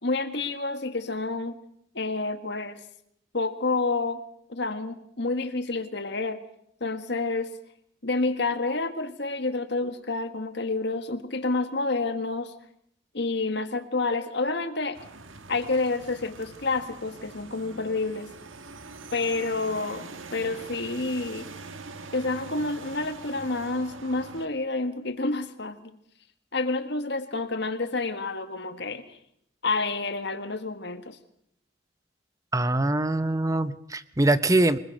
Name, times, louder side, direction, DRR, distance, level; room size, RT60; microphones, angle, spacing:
voice 1, 0.0-1.6 1.9-2.8 3.3-4.2 4.5-6.4 6.8-7.5 8.0-12.5 13.1-15.0 15.5-18.3 19.1-21.5 22.1-26.0 26.5-29.2 29.6-31.2, left 3 dB, 55° left, 9 dB, 1.7 m, -29 dB
sound 1, 14.9-24.5, right 3 dB, 75° right, 1.7 m, -43 dB
voice 2, 32.5-34.8, right 2 dB, 15° right, 13 dB, 0.8 m, -23 dB
24.0 x 20.5 x 6.6 m, 0.72 s
head